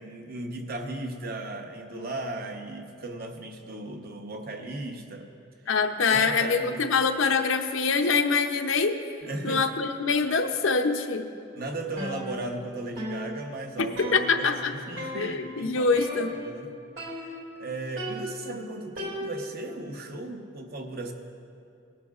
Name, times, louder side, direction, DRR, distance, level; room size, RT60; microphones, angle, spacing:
voice 1, 0.0-5.3 6.1-6.8 9.2-9.6 11.6-15.9 16.4-16.7 17.1-21.1, right 2 dB, 45° right, 3 dB, 1.0 m, -36 dB
voice 2, 5.7-9.0 9.4-11.3 13.8-14.7 15.1-16.3, left 4 dB, 65° left, 6 dB, 0.7 m, -24 dB
sound 1, 12.0-12.7 13.0-14.7 15.0-15.5 16.0-16.6 17.0-17.6 18.0-19.7, left 1 dB, 65° right, 2.5 m, -37 dB
19.5 x 11.0 x 2.4 m, 2.5 s
head